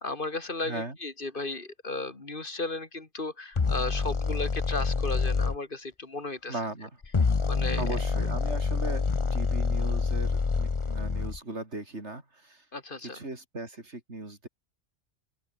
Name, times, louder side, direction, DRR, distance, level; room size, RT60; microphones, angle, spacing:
voice 1, 0.0-6.6 7.5-7.8 12.7-13.2, left 2 dB, 50° left, 2.5 m, -35 dB
voice 2, 0.6-1.0 6.5-6.9 7.6-9.0 9.3-12.6 13.0-14.5, right 2 dB, 75° right, 4.7 m, -38 dB
sound 1, 3.5-5.6 7.0-11.4, left 4 dB, 30° left, 0.8 m, -27 dB
open air
omnidirectional pair, 1.2 m